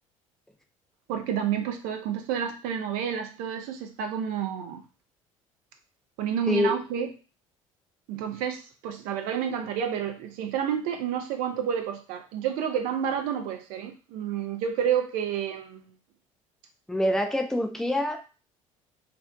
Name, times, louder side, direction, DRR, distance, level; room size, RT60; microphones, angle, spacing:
voice 1, 1.1-4.8 6.2-7.1 8.1-15.8, right 8 dB, 55° right, 5 dB, 0.5 m, -30 dB
voice 2, 6.5-6.8 16.9-18.3, left 1 dB, 5° left, 4 dB, 0.3 m, -25 dB
2.5 x 2.0 x 2.4 m, 0.34 s
figure-of-eight pair, 60°, 17 cm